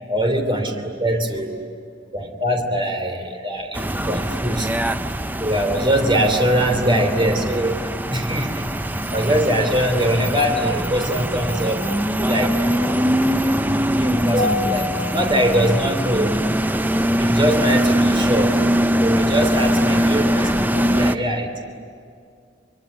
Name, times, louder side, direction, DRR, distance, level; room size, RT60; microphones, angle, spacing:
voice 1, 0.1-1.6 2.1-4.7 5.4-8.6 9.1-13.0 13.5-16.4 17.2-18.6 19.0-21.9, equal, 30° right, 4 dB, 3.1 m, -22 dB
sound 1, 3.7-21.2, equal, 10° right, 0.7 m, -22 dB
25.0 x 24.0 x 9.7 m, 2.3 s
head